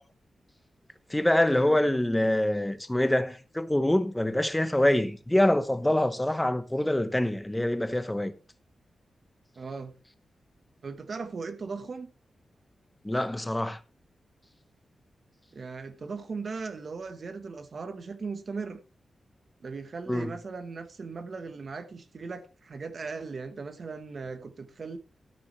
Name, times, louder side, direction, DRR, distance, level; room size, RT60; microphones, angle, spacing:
voice 1, 1.1-8.3 13.0-13.8 20.1-20.3, left 1 dB, 10° left, 1.0 m, -25 dB
voice 2, 9.6-10.0 10.8-12.1 15.5-18.8 19.6-25.0, right 4 dB, 45° right, 1.2 m, -38 dB
13.5 x 9.5 x 3.3 m
wide cardioid pair, 150°, 0 cm